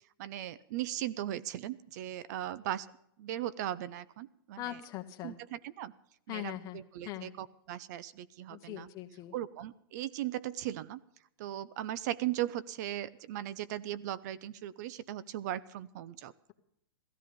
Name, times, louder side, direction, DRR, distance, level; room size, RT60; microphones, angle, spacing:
voice 1, 0.2-2.9 3.2-4.8 5.2-5.9 6.3-8.9 9.3-11.0 11.4-16.3, right 13 dB, 50° right, 18 dB, 0.6 m, -38 dB
voice 2, 4.6-5.3 6.3-6.8 7.0-7.3 8.5-9.3, left 13 dB, 30° left, 5 dB, 1.6 m, -41 dB
16.5 x 13.5 x 5.3 m, 0.73 s
hypercardioid pair, 145°, 12 cm